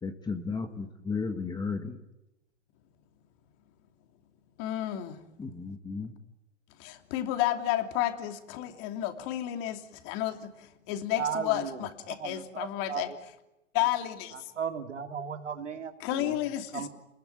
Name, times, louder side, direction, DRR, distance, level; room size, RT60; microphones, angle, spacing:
voice 1, 0.0-2.0 5.4-6.1, left 4 dB, 10° left, 1.7 m, -34 dB
voice 2, 4.6-5.2 6.8-13.1 13.7-14.5 16.0-16.9, left 13 dB, 40° left, 3.1 m, -31 dB
voice 3, 11.2-11.8 12.2-13.2 14.6-16.3 16.7-16.9, right 7 dB, 80° right, 3.2 m, -35 dB
29.5 x 21.0 x 9.6 m
hypercardioid pair, 120°, 36 cm